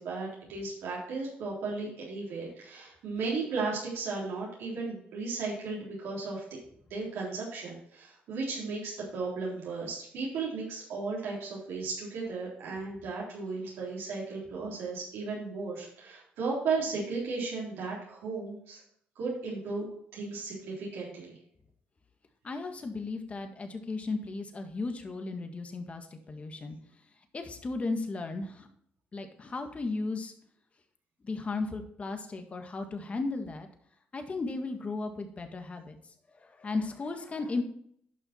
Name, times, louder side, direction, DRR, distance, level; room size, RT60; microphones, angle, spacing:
voice 1, 0.0-6.4 6.9-18.8 19.2-19.8 20.1-21.4, right 4 dB, 80° right, -4 dB, 3.6 m, -35 dB
voice 2, 22.4-26.8 27.3-28.7 29.1-30.3 31.2-33.7 34.1-36.0 36.3-37.6, left 3 dB, 35° left, 6 dB, 1.8 m, -35 dB
11.0 x 5.7 x 4.5 m, 0.67 s
cardioid pair, 85°, 4 cm